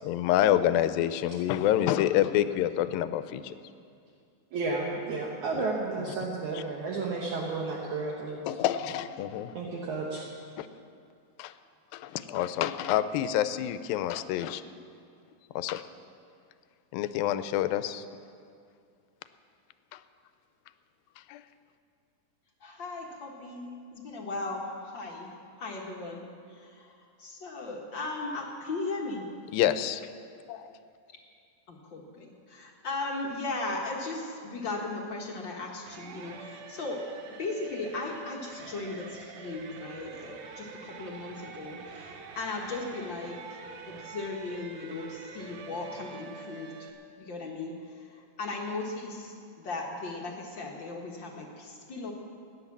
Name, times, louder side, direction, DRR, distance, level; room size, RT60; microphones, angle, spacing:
voice 1, 0.0-3.5 5.5-5.7 6.5-6.6 8.5-9.6 10.6-10.7 11.4-11.6 11.9-14.6 15.5-15.8 16.9-18.1 19.9-20.0 21.2-21.4 29.5-30.0 30.5-30.7, left 12 dB, 85° left, 12 dB, 2.4 m, -27 dB
voice 2, 4.5-8.4 9.5-10.2, right 3 dB, 65° right, -2 dB, 2.4 m, -32 dB
voice 3, 22.6-25.3 25.6-29.3 31.7-37.0 37.4-43.4 43.9-46.7 47.2-52.1, left 3 dB, 55° left, -1 dB, 1.3 m, -37 dB
sound 1, 35.9-46.9, right 5 dB, 90° right, 2.9 m, -46 dB
17.0 x 10.5 x 7.3 m, 2.4 s
omnidirectional pair, 4.1 m